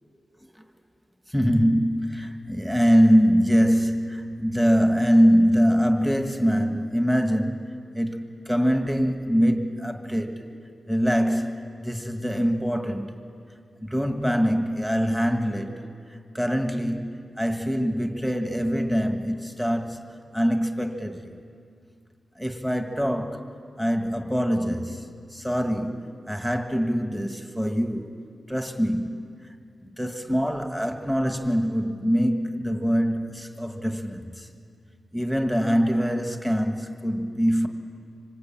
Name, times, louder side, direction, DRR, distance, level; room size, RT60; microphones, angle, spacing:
voice 1, 1.3-7.7 7.9-10.5 10.9-13.2 13.8-15.8 16.1-21.4 22.4-23.5 23.8-28.2 28.5-29.3 30.0-34.5 35.1-37.7, equal, 5° right, 1.7 m, -24 dB
26.5 x 25.5 x 8.8 m
wide cardioid pair, 130°, 0 cm